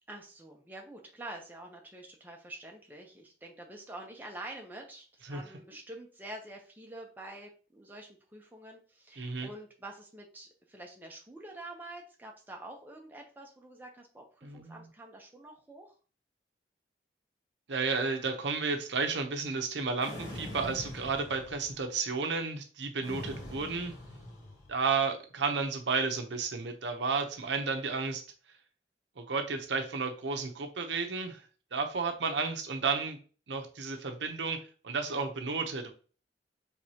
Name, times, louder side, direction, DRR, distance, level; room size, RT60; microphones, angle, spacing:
voice 1, 0.1-15.9, right 1 dB, 10° right, 0 dB, 0.7 m, -47 dB
voice 2, 9.2-9.5 14.4-14.9 17.7-23.9 24.7-28.2 29.2-31.4 31.7-33.2 33.5-35.9, right 4 dB, 85° right, 5 dB, 0.8 m, -32 dB
sound 1, 20.0-21.9 23.0-24.8, left 1 dB, 45° left, 1.5 m, -43 dB
4.7 x 3.5 x 2.8 m, 0.38 s
head